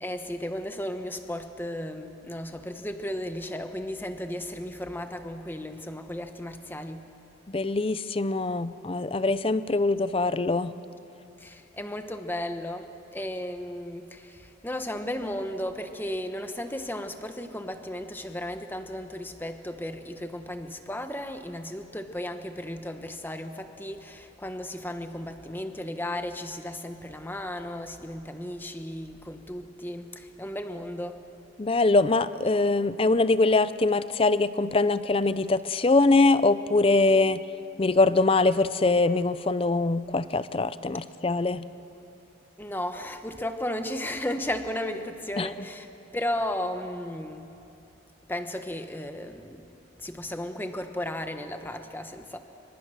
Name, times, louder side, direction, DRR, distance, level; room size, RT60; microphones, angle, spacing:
voice 1, 0.0-7.1 11.4-31.3 42.6-45.9 46.1-47.5 48.3-49.6 50.0-52.4, left 1 dB, 10° left, 7 dB, 1.0 m, -35 dB
voice 2, 7.5-10.7 31.6-37.4 37.8-41.7 45.4-45.5, left 3 dB, 30° left, 15 dB, 0.5 m, -23 dB
26.0 x 25.0 x 6.4 m, 2.9 s
head